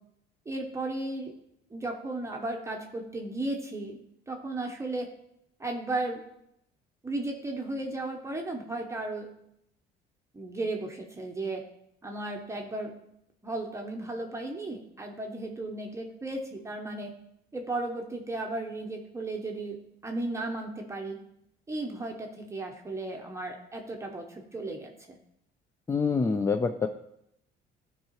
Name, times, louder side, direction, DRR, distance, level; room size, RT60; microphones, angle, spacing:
voice 1, 0.5-1.3 1.7-4.0 4.3-5.1 5.6-6.2 7.0-9.3 10.3-11.6 12.0-12.9 13.4-17.1 17.5-19.8 20.0-21.2 21.7-25.2, right 2 dB, 15° right, 1 dB, 0.8 m, -35 dB
voice 2, 25.9-26.9, left 5 dB, 15° left, 8 dB, 0.3 m, -26 dB
12.0 x 4.7 x 3.0 m, 0.78 s
cardioid pair, 110°, 17 cm